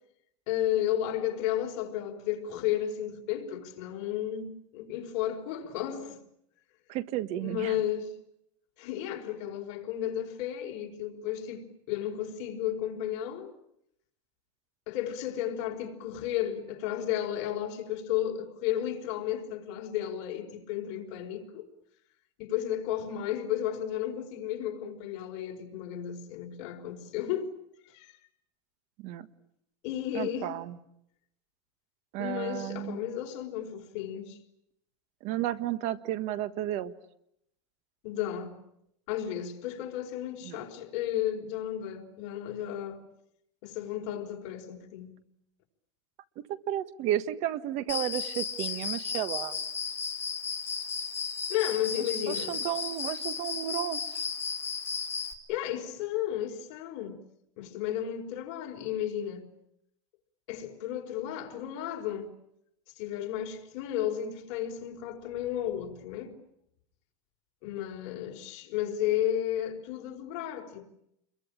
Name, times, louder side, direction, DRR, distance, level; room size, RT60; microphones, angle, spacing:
voice 1, 0.5-6.2 7.4-8.1 8.8-13.5 14.9-21.7 22.4-27.5 27.8-28.2 29.8-30.5 32.2-34.4 38.0-38.6 39.1-43.0 43.6-45.1 51.5-52.6 55.5-57.2 57.6-59.5 60.5-62.3 63.0-66.3 67.6-70.8, left 11 dB, 55° left, 5.0 m, -33 dB
voice 2, 6.9-7.8 29.0-29.3 30.1-30.8 32.1-33.0 35.2-36.9 40.4-40.6 46.4-49.6 52.0-54.3, right 12 dB, 50° right, 1.5 m, -33 dB
Cricket, 47.9-55.3, left 5 dB, 15° left, 3.3 m, -34 dB
28.5 x 22.5 x 8.8 m
supercardioid pair, 150°, 15 cm